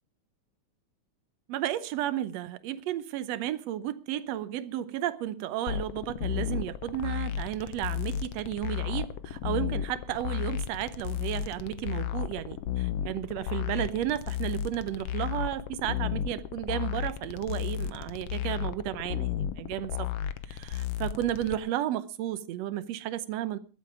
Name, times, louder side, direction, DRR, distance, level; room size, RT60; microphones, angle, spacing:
voice 1, 1.5-20.1 20.5-23.6, right 12 dB, 70° right, 1.9 m, -33 dB
sound 1, 5.7-21.6, left 10 dB, 70° left, 1.6 m, -33 dB
22.0 x 8.3 x 4.8 m
omnidirectional pair, 3.4 m